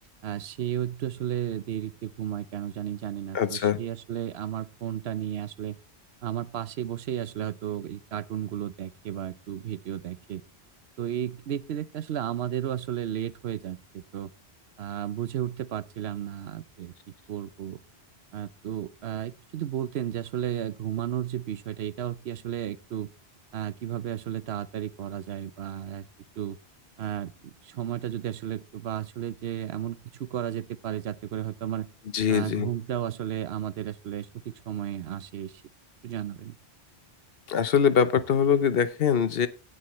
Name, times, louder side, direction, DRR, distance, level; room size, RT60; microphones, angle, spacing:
voice 1, 0.2-5.8 6.2-10.4 11.0-14.3 14.8-16.9 17.3-17.8 18.3-23.1 23.5-26.1 26.4-26.6 27.0-31.9 32.3-35.6 36.0-36.6, right 10 dB, 75° right, 0.9 m, -33 dB
voice 2, 3.3-3.8 32.1-32.7 37.5-39.5, left 7 dB, 65° left, 1.0 m, -23 dB
18.0 x 6.8 x 3.1 m
omnidirectional pair, 1.1 m